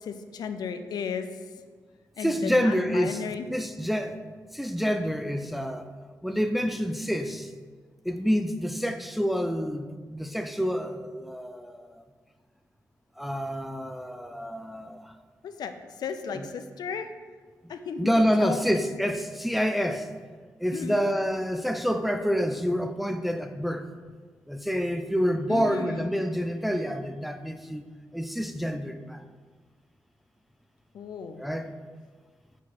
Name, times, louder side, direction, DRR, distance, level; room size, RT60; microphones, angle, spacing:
voice 1, 0.0-1.3 2.2-3.5 15.4-17.1 17.7-19.1 20.7-21.0 25.5-26.1 30.9-31.4, left 6 dB, 85° left, 0.4 m, -35 dB
voice 2, 2.2-3.2 3.5-4.2 4.5-5.9 6.2-7.5 8.0-12.0 13.2-15.1 16.3-16.5 17.6-17.7 18.0-20.1 20.6-23.9 24.5-27.8 28.1-29.2 31.4-31.7, equal, ahead, 0.4 m, -28 dB
6.0 x 4.3 x 4.2 m
cardioid pair, 95°, 7 cm